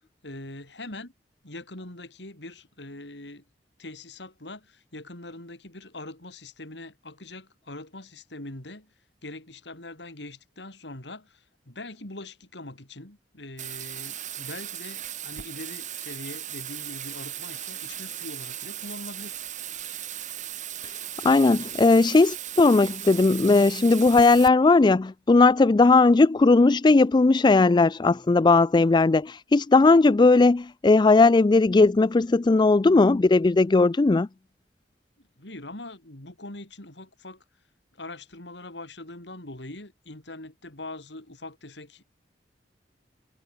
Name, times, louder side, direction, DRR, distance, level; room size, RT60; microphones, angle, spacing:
voice 1, 0.2-1.1 1.4-3.4 3.8-8.9 9.2-19.4 35.4-37.4 37.9-42.0, left 2 dB, 80° left, 4.2 m, -42 dB
Bathtub (filling or washing), 13.6-24.5, right 11 dB, 45° right, 2.5 m, -37 dB
voice 2, 21.2-34.3, left 3 dB, 25° left, 0.4 m, -18 dB
head